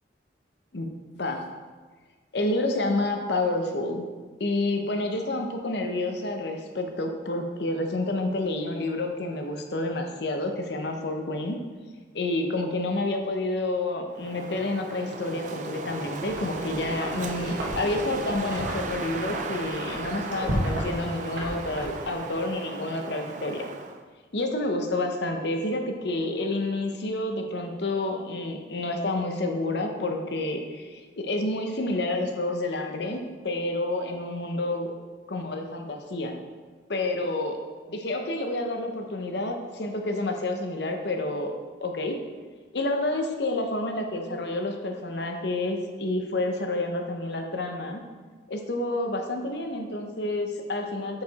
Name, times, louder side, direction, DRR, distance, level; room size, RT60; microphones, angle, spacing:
voice 1, 0.7-1.5 2.3-4.1 4.4-11.6 12.1-23.7 24.3-34.9 35.3-36.4 36.9-37.6 37.9-42.2 42.7-48.0 48.5-51.2, left 2 dB, 60° left, 4 dB, 0.8 m, -29 dB
Wind, 14.1-24.0, right 3 dB, 40° right, 0.4 m, -36 dB
Wind 2, 15.9-22.4, equal, 75° right, 1.6 m, -35 dB
6.8 x 4.9 x 4.1 m, 1.4 s
head